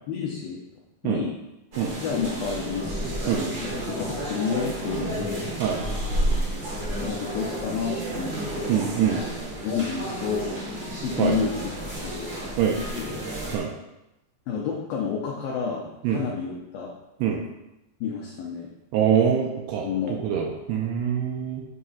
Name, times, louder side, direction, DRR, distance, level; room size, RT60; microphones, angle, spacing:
voice 1, 0.1-0.6 1.0-1.4 2.0-2.8 3.2-3.6 4.0-5.5 7.0-8.7 9.6-11.5 12.0-12.3 13.0-13.1 14.5-16.9 18.0-18.7 19.8-20.2, left 6 dB, 80° left, -3 dB, 2.1 m, -30 dB
sound 1, 1.7-13.6, right 1 dB, 65° right, 1.1 m, -31 dB
voice 2, 8.7-9.2 11.2-11.4 12.6-12.8 13.5-13.7 16.0-16.2 17.2-17.4 18.9-21.6, right 8 dB, 80° right, 0 dB, 2.4 m, -24 dB
7.6 x 3.6 x 5.7 m, 0.94 s
omnidirectional pair, 5.2 m